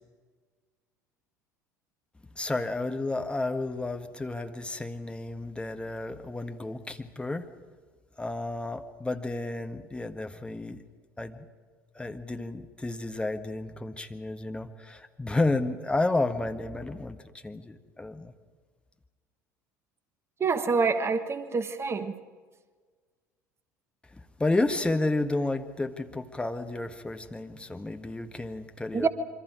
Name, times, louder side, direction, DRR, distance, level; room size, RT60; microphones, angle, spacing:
voice 1, 2.3-7.5 8.2-10.8 11.2-11.4 11.9-17.2 17.4-18.3 24.4-29.1, left 2 dB, 10° left, 7 dB, 1.5 m, -31 dB
voice 2, 20.4-22.2 28.9-29.1, right 5 dB, 25° right, 11 dB, 1.5 m, -26 dB
27.0 x 25.0 x 4.9 m, 1.5 s
figure-of-eight pair, 65°, 9 cm